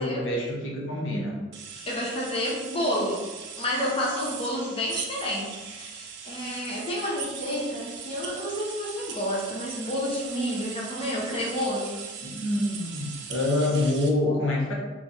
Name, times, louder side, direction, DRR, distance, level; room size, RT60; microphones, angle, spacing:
voice 1, 0.0-1.4 12.2-14.7, left 1 dB, 75° left, -3 dB, 0.8 m, -26 dB
sound 1, 1.5-14.1, right 6 dB, 65° right, 0.5 m, -39 dB
voice 2, 1.9-3.2 3.6-5.5 5.8-12.1 14.3-14.5, equal, 30° left, -4 dB, 0.6 m, -30 dB
3.0 x 2.4 x 3.9 m, 1.2 s
head